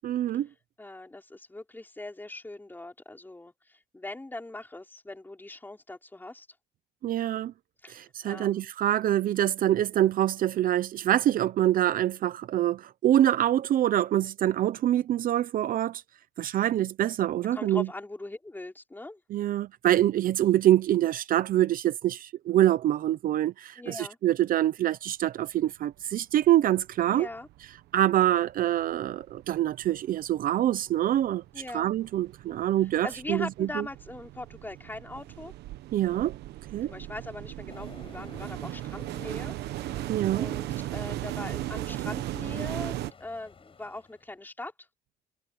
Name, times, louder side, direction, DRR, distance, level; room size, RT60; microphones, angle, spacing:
voice 1, 0.0-0.5 7.0-7.5 7.9-16.0 16.4-17.9 19.3-27.3 27.9-31.4 31.7-33.8 35.9-36.4 36.7-36.9 40.1-40.5, right 12 dB, 55° right, 0.7 m, -25 dB
voice 2, 0.8-6.5 7.8-8.7 17.5-19.2 23.8-24.2 27.1-27.5 31.5-31.9 33.0-35.5 36.9-40.1 40.3-44.7, left 2 dB, 10° left, 4.5 m, -41 dB
sound 1, 26.4-26.5 26.8-27.8 28.1-43.1, right 15 dB, 80° right, 1.2 m, -37 dB
Train, 37.7-44.4, left 5 dB, 30° left, 7.2 m, -52 dB
cardioid pair, 110°, 17 cm